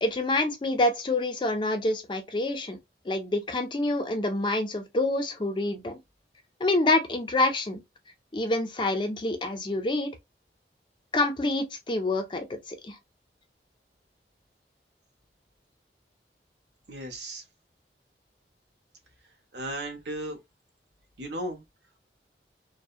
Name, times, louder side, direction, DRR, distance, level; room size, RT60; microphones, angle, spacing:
voice 1, 0.0-2.8 3.1-6.0 6.6-7.8 8.3-10.1 11.1-13.0, left 2 dB, 25° left, 0.4 m, -27 dB
voice 2, 16.9-17.4 19.5-20.4 21.2-21.6, right 1 dB, 80° right, 0.7 m, -35 dB
2.7 x 2.0 x 2.3 m
head